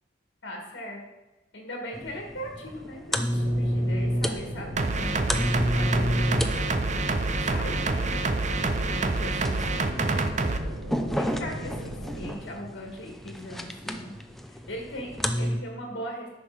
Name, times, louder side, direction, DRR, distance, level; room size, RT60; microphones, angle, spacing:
voice 1, 0.4-1.0 1.5-5.4 5.7-6.5 7.5-8.1 8.5-10.2 11.2-14.1 14.5-16.3, equal, 65° left, 1 dB, 1.8 m, -39 dB
sound 1, 1.9-15.6, equal, ahead, 0.6 m, -31 dB
sound 2, 3.3-12.3, equal, 80° right, 1.7 m, -38 dB
sound 3, 4.8-10.6, right 3 dB, 40° right, 0.6 m, -27 dB
10.5 x 6.2 x 4.9 m, 1.1 s
head